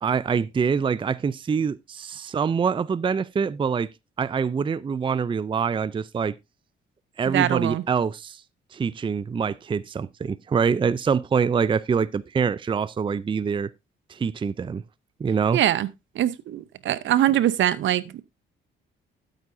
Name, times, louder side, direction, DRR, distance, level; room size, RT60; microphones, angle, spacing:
voice 1, 0.0-3.9 4.2-6.4 7.2-8.4 8.7-13.7 14.1-14.8 15.2-15.6, right 6 dB, 25° right, 0.5 m, -25 dB
voice 2, 7.3-7.8 15.5-15.9 16.1-18.2, right 12 dB, 70° right, 0.8 m, -23 dB
12.0 x 9.0 x 2.7 m
cardioid pair, 90°, 20 cm